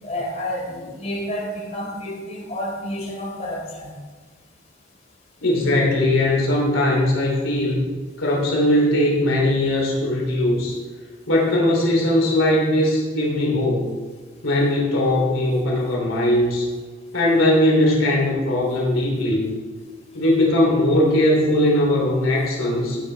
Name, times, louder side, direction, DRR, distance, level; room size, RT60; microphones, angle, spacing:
voice 1, 0.0-4.0, left 1 dB, 35° left, -4 dB, 3.9 m, -30 dB
voice 2, 5.4-7.8 8.2-10.8 11.3-13.9 14.4-16.7 17.1-19.5 20.1-23.0, left 1 dB, 80° left, -3 dB, 3.1 m, -19 dB
15.0 x 9.5 x 3.4 m, 1.4 s
head